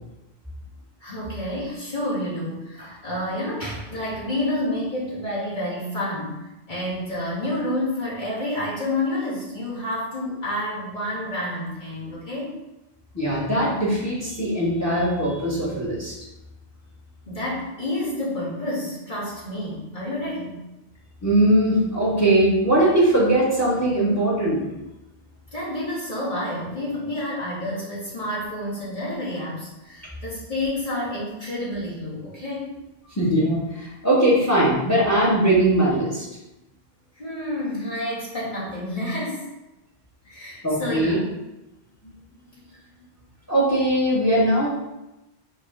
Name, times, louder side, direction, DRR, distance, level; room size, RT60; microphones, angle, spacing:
voice 1, 1.0-12.5 17.3-20.6 25.5-32.7 37.2-39.5 40.2-41.2, left 1 dB, 45° left, -8 dB, 2.7 m, -29 dB
voice 2, 13.1-16.1 21.2-24.6 33.1-36.2 40.6-41.2 42.5-42.6 43.5-44.7, right 1 dB, 15° left, -5 dB, 1.6 m, -20 dB
6.3 x 3.2 x 5.4 m, 0.97 s
omnidirectional pair, 1.1 m